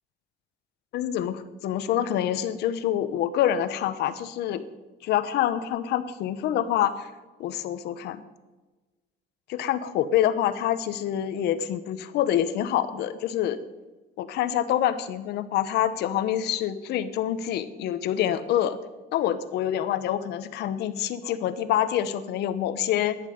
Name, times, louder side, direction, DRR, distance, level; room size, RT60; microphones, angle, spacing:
voice 1, 0.9-4.6 5.0-7.1 7.4-8.2 9.5-13.6 14.2-18.8 19.1-23.2, left 11 dB, 80° left, 13 dB, 1.0 m, -26 dB
14.0 x 10.5 x 5.2 m, 1.2 s
cardioid pair, 110°, 17 cm